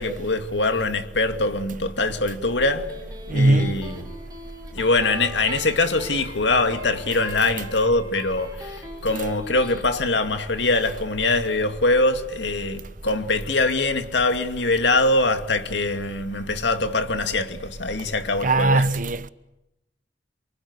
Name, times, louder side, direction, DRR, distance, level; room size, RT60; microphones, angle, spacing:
voice 1, 0.0-2.9 3.3-4.0 4.7-18.9, left 2 dB, 65° left, 2.4 m, -23 dB
Electric guitar, 2.4-9.8, right 1 dB, 20° right, 6.5 m, -41 dB
voice 2, 3.3-3.8 18.4-19.3, right 2 dB, 45° right, 1.0 m, -20 dB
28.0 x 25.5 x 8.2 m
head